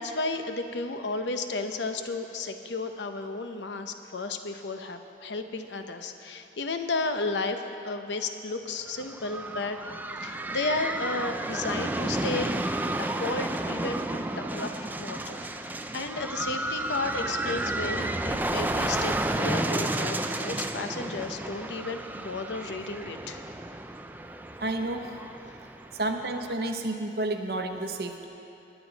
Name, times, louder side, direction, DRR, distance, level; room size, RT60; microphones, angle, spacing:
voice 1, 0.0-9.8 10.2-12.5 13.0-14.0 14.4-23.4, left 3 dB, 90° left, 7 dB, 0.8 m, -33 dB
sound 1, 8.9-26.5, right 1 dB, 10° right, 0.3 m, -32 dB
voice 2, 24.6-25.1 25.9-28.3, right 2 dB, 60° right, 5 dB, 0.9 m, -30 dB
20.0 x 9.1 x 4.0 m, 2.9 s
head